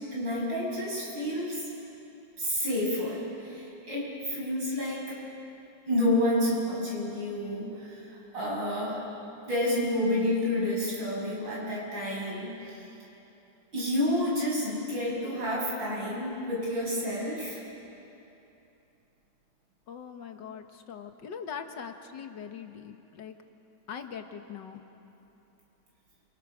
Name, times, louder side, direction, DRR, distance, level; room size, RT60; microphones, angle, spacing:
voice 1, 0.1-1.7 2.4-5.1 5.9-9.0 9.5-12.9 13.7-17.6, left 1 dB, 75° right, -4 dB, 7.2 m, -29 dB
voice 2, 19.9-23.4 23.9-24.8, left 7 dB, 70° left, 6 dB, 1.9 m, -41 dB
27.5 x 25.5 x 6.3 m, 2.9 s
omnidirectional pair, 2.0 m